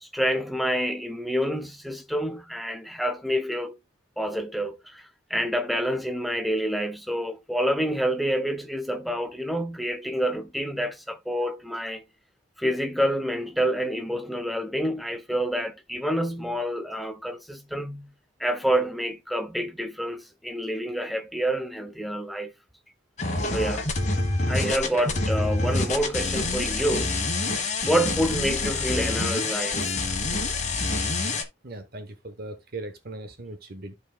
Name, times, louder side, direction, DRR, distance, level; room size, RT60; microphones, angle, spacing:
voice 1, 0.0-3.8 4.2-12.0 12.6-18.1 18.4-22.5 23.5-23.9 24.5-27.3 27.6-30.1, equal, ahead, 0.6 m, -28 dB
sound 1, 23.2-31.4, left 3 dB, 35° left, 1.4 m, -27 dB
voice 2, 31.6-33.9, right 2 dB, 50° right, 1.0 m, -39 dB
13.5 x 4.6 x 2.3 m
head